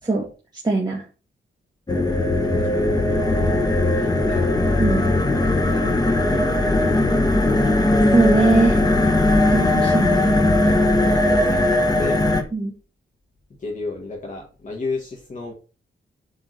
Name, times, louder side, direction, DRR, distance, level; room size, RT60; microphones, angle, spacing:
voice 1, 0.6-1.0 4.8-5.0 8.1-8.8 9.5-10.4 12.5-12.7, right 3 dB, 20° right, -3 dB, 1.7 m, -20 dB
sound 1, 1.9-12.4, left 2 dB, 20° left, 1.2 m, -19 dB
voice 2, 2.3-2.9 3.9-4.5 5.5-6.9 10.6-12.3 13.6-15.5, left 3 dB, 40° left, -1 dB, 1.6 m, -33 dB
8.1 x 3.7 x 6.5 m, 0.34 s
wide cardioid pair, 160°, 21 cm